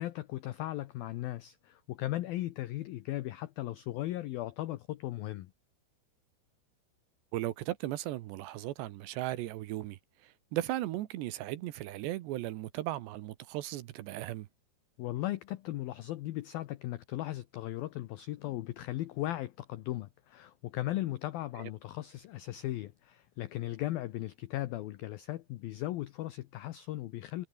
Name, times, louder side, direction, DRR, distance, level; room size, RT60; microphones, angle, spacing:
voice 1, 0.0-5.5 15.0-27.5, left 15 dB, 85° left, 2.1 m, -37 dB
voice 2, 7.3-14.5, right 15 dB, 75° right, 3.0 m, -37 dB
omnidirectional pair, 5.5 m